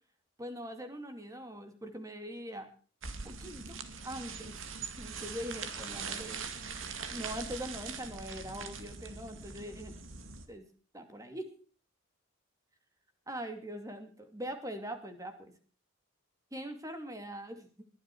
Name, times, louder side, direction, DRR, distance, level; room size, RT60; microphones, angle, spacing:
voice 1, 0.4-2.7 3.2-3.8 4.0-4.7 5.0-6.4 7.1-9.9 10.5-10.6 10.9-11.5 13.3-15.5 16.5-17.8, equal, 15° right, 7 dB, 2.5 m, -42 dB
sound 1, 3.0-10.5, right 5 dB, 75° right, 2.2 m, -42 dB
21.0 x 12.0 x 4.6 m, 0.42 s
head